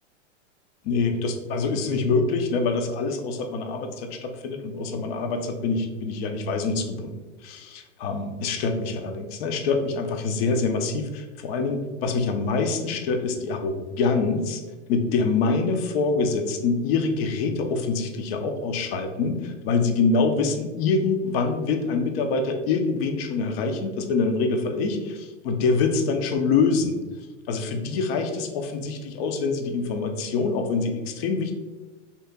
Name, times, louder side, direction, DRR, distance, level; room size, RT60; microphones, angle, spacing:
voice 1, 0.8-7.1 7.4-14.6 14.9-27.0 27.5-31.5, left 4 dB, 55° left, 5 dB, 0.6 m, -25 dB
3.0 x 2.9 x 3.5 m, 1.2 s
hypercardioid pair, 105°, 38 cm